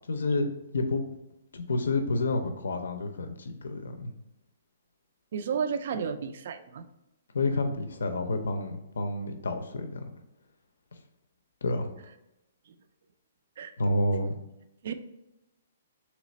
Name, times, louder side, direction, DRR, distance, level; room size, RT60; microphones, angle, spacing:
voice 1, 0.1-1.0 1.5-4.1 7.3-10.1 11.6-11.9 13.8-14.4, left 2 dB, 90° left, 7 dB, 0.4 m, -29 dB
voice 2, 5.3-6.9 12.7-12.8 13.6-13.7 14.8-14.9, right 6 dB, 55° right, 10 dB, 0.3 m, -32 dB
3.2 x 3.0 x 4.0 m, 0.91 s
hypercardioid pair, 160°, 0 cm